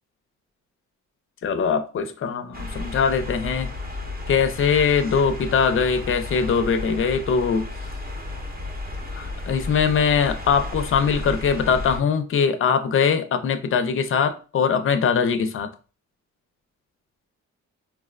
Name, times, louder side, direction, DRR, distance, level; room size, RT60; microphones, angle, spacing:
voice 1, 1.4-3.7 4.3-7.7 9.2-15.7, left 6 dB, 45° left, 0.5 m, -22 dB
sound 1, 2.5-12.0, left 2 dB, 30° right, 0.8 m, -33 dB
4.4 x 2.0 x 2.3 m
cardioid pair, 100°, 30 cm